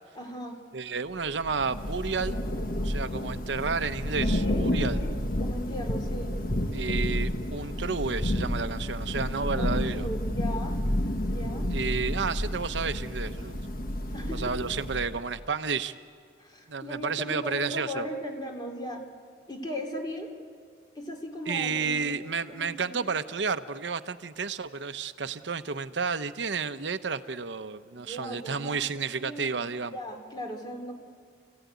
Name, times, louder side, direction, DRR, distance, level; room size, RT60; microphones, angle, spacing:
voice 1, 0.1-0.5 4.2-6.3 9.6-10.8 11.3-11.7 14.1-14.5 16.4-19.0 19.5-20.3 20.9-23.1 28.0-29.6 29.9-30.9, equal, 25° left, 3 dB, 3.0 m, -38 dB
voice 2, 0.7-2.4 2.8-5.0 6.7-10.1 11.7-13.6 14.3-15.9 16.7-18.1 21.5-29.9, right 5 dB, 85° right, 10 dB, 0.8 m, -31 dB
Thunder / Rain, 1.2-15.3, left 1 dB, 50° left, 1.6 m, -30 dB
30.0 x 15.5 x 9.4 m, 2.1 s
head